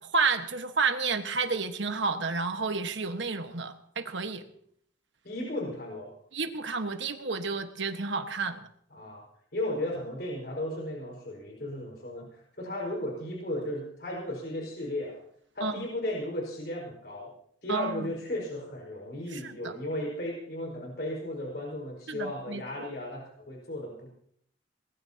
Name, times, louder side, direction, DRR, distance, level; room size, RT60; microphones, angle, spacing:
voice 1, 0.0-4.4 6.3-8.7 15.6-15.9 17.7-18.2 19.3-19.7 22.1-22.6, right 4 dB, 80° right, 7 dB, 1.4 m, -31 dB
voice 2, 5.2-6.1 8.9-9.2 9.5-15.2 15.5-17.3 17.6-24.1, left 1 dB, 55° left, -1 dB, 5.1 m, -35 dB
23.0 x 20.0 x 2.9 m, 0.67 s
head